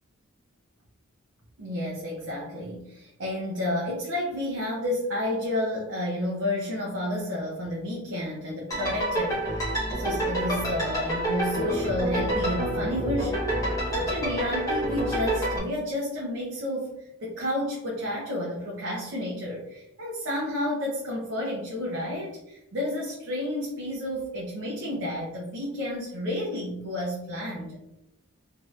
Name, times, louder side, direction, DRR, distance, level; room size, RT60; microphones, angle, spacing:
voice 1, 1.6-27.8, left 1 dB, 55° right, -4 dB, 0.6 m, -31 dB
sound 1, 8.7-15.6, right 1 dB, 15° left, 0.9 m, -28 dB
3.1 x 2.9 x 2.4 m, 0.85 s
head